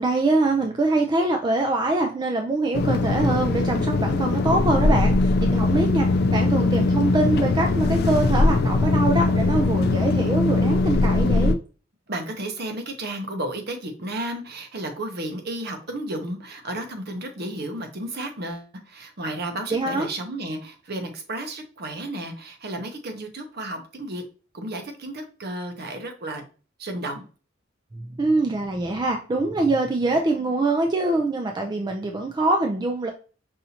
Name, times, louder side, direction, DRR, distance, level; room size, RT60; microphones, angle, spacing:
voice 1, 0.0-11.6 19.7-20.1 27.9-33.1, right 2 dB, 20° right, 3 dB, 0.4 m, -24 dB
sound 1, 2.7-11.6, left 3 dB, 55° left, 0.3 m, -21 dB
voice 2, 12.1-24.2 24.5-26.4 26.8-27.2, right 1 dB, 55° right, 5 dB, 0.8 m, -33 dB
5.5 x 2.6 x 2.8 m, 0.36 s
head